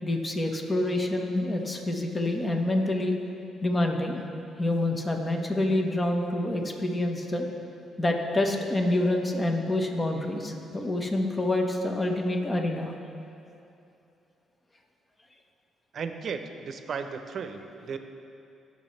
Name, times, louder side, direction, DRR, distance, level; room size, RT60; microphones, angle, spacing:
voice 1, 0.0-3.1 3.6-4.2 4.6-7.5 8.0-12.9, left 1 dB, 25° left, 2 dB, 1.3 m, -27 dB
voice 2, 15.9-18.0, right 5 dB, 55° right, 7 dB, 0.8 m, -35 dB
19.5 x 7.0 x 3.3 m, 2.7 s
cardioid pair, 90°, 0 cm